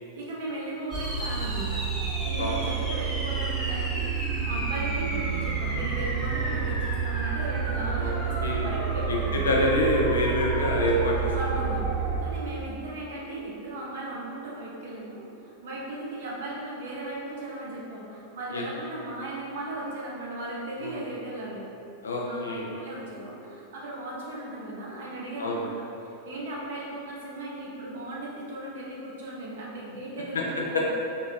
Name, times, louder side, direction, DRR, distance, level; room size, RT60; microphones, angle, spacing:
voice 1, 0.1-9.4 11.3-11.8 12.2-21.6 22.2-30.9, right 2 dB, 60° right, -5 dB, 0.7 m, -37 dB
sound 1, 0.9-12.2, right 5 dB, 15° right, 0.9 m, -29 dB
voice 2, 7.9-9.2 9.4-11.3 18.5-18.6 20.8-21.0 22.0-22.7 25.4-25.6 30.3-30.4 30.7-30.8, left 1 dB, 70° left, -2 dB, 0.5 m, -26 dB
3.6 x 2.7 x 2.4 m, 2.8 s
figure-of-eight pair, 90°, 0 cm